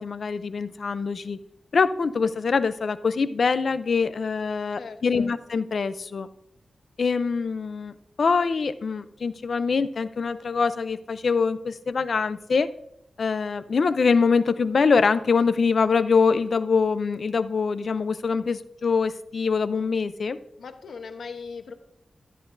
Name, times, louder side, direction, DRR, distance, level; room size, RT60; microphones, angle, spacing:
voice 1, 0.0-1.4 1.7-6.3 7.0-12.7 13.2-20.4, left 5 dB, 55° left, 13 dB, 0.5 m, -24 dB
voice 2, 4.8-5.4 20.6-21.7, left 5 dB, 80° left, 7 dB, 0.9 m, -39 dB
12.5 x 9.7 x 2.6 m, 0.80 s
wide cardioid pair, 170°, 0 cm